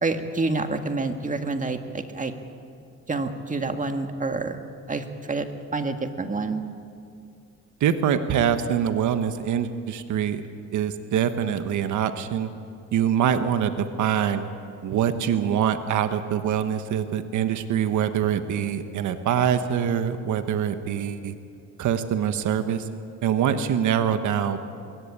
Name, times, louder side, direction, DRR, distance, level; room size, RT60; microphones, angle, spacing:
voice 1, 0.0-2.3 3.1-4.6 4.9-6.6, right 3 dB, 25° right, 6 dB, 1.8 m, -28 dB
voice 2, 7.8-10.4 10.7-12.5 12.9-14.5 14.8-21.3 21.8-22.9 23.2-24.6, right 8 dB, 75° right, 9 dB, 1.3 m, -24 dB
21.5 x 17.5 x 8.7 m, 2.5 s
cardioid pair, 90°, 30 cm